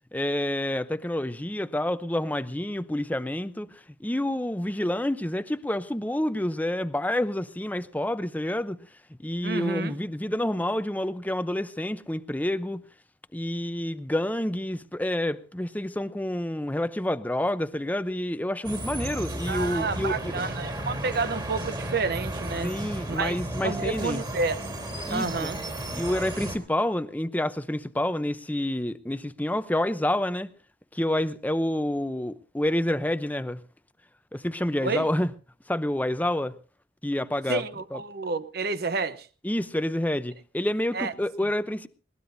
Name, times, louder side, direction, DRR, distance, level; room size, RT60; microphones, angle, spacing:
voice 1, 0.1-3.7 4.0-8.8 9.2-12.8 13.3-20.3 22.6-24.2 25.1-25.5 25.9-30.5 30.9-33.6 34.3-35.3 35.7-36.5 37.0-37.6 37.9-38.0 39.4-41.9, left 1 dB, 10° left, 0.7 m, -28 dB
voice 2, 9.4-10.0 19.5-22.7 23.1-24.6 25.1-25.6 34.8-35.1 37.5-39.3 40.9-41.1, right 4 dB, 60° right, 0.8 m, -30 dB
sound 1, 18.6-26.6, right 1 dB, 25° right, 3.3 m, -34 dB
21.0 x 18.5 x 2.7 m
head